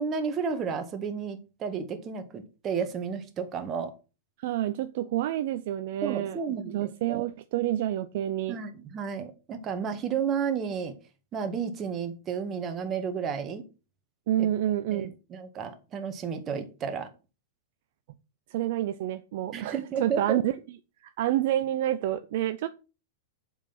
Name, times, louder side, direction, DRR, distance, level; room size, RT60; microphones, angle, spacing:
voice 1, 0.0-3.9 6.0-7.3 8.5-11.0 11.3-13.6 14.9-17.1 19.5-20.4, right 6 dB, 30° right, 1.8 m, -32 dB
voice 2, 4.4-6.4 6.7-8.6 14.3-15.1 18.5-20.5 21.2-22.7, right 12 dB, 60° right, 0.6 m, -28 dB
7.2 x 5.6 x 6.0 m
hypercardioid pair, 100°, 0 cm